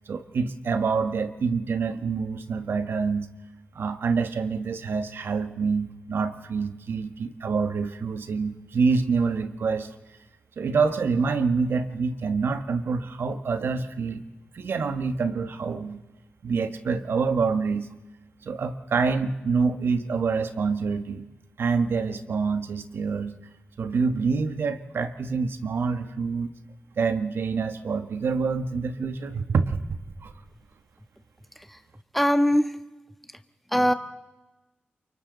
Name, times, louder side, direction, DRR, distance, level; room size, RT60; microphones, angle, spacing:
voice 1, 0.1-3.3 3.7-9.9 10.6-14.2 14.5-16.0 16.4-17.9 18.4-21.2 21.6-23.4 23.8-26.5 27.0-29.8 30.2-30.3, right 5 dB, 70° right, 9 dB, 1.5 m, -26 dB
voice 2, 32.1-32.7 33.7-33.9, equal, ahead, 8 dB, 1.5 m, -20 dB
28.5 x 24.0 x 4.1 m, 1.1 s
cardioid pair, 55°, 4 cm